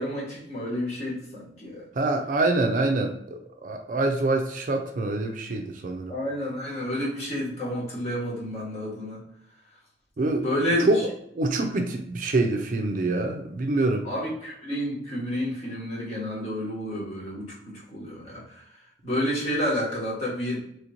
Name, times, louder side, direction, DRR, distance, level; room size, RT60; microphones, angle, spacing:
voice 1, 0.0-1.8 6.1-9.2 10.4-11.0 14.0-18.6 19.0-20.6, equal, 40° left, -6 dB, 1.3 m, -30 dB
voice 2, 2.0-6.1 10.2-10.4 10.8-11.0 11.4-14.1, right 2 dB, 45° right, 4 dB, 0.4 m, -25 dB
3.0 x 2.9 x 2.6 m, 0.73 s
head